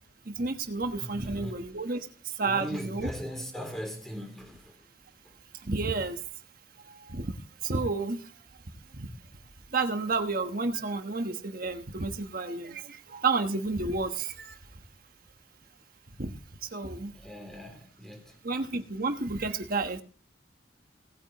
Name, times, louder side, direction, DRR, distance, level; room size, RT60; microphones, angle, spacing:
voice 1, 0.2-3.1 5.6-6.2 6.8-8.3 8.9-9.1 9.7-14.6 16.2-16.3 16.6-17.1 18.4-20.0, right 3 dB, 55° right, 1.3 m, -31 dB
voice 2, 1.0-1.6 2.4-4.7 17.0-18.3, equal, ahead, 3.3 m, -39 dB
18.5 x 8.9 x 3.0 m
head